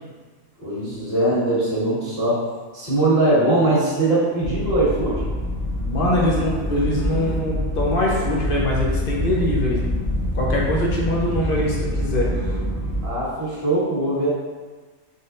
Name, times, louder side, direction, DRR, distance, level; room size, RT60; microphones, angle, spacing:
voice 1, 0.6-2.4 2.7-5.2 13.0-14.3, right 2 dB, 50° right, -9 dB, 1.8 m, -21 dB
sound 1, 4.4-13.1, left 1 dB, 15° right, 0.5 m, -25 dB
voice 2, 5.9-9.8 10.3-12.3, left 1 dB, 50° left, -3 dB, 0.8 m, -23 dB
sound 2, 6.2-7.4 8.0-9.7 10.0-12.7, left 1 dB, 85° right, 1.0 m, -38 dB
4.1 x 3.5 x 2.4 m, 1.4 s
omnidirectional pair, 1.4 m